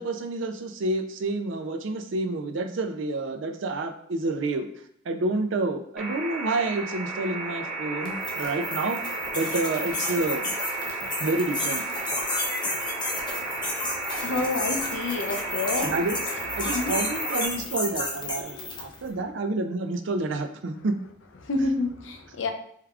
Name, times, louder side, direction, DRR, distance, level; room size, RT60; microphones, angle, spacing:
voice 1, 0.0-4.7 5.1-10.5 11.2-11.8 12.6-12.7 15.8-16.2 16.6-20.9, right 2 dB, 70° right, 7 dB, 0.5 m, -29 dB
sound 1, 6.0-17.5, right 2 dB, 5° right, 1.0 m, -33 dB
sound 2, 8.0-19.0, left 2 dB, 25° left, 0.7 m, -32 dB
voice 2, 13.2-15.9 16.7-17.0 18.4-19.1 21.4-22.5, left 2 dB, 75° left, 5 dB, 0.6 m, -30 dB
4.5 x 3.4 x 2.4 m, 0.67 s
head